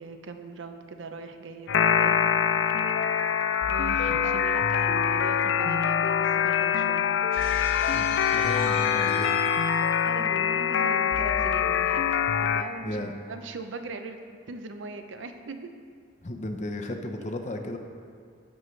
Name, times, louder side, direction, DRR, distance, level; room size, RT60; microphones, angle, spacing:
voice 1, 0.0-2.2 3.7-7.1 10.0-13.0 13.3-14.2 14.5-15.7, right 3 dB, 75° right, 7 dB, 0.6 m, -40 dB
sound 1, 1.7-12.6, left 8 dB, 65° left, 0.3 m, -24 dB
Shatter, 7.3-10.1, left 3 dB, 85° left, 2.0 m, -41 dB
voice 2, 8.3-9.3 12.8-13.1 16.2-17.8, left 1 dB, 35° left, 5 dB, 0.7 m, -34 dB
14.5 x 6.5 x 3.2 m, 2.2 s
head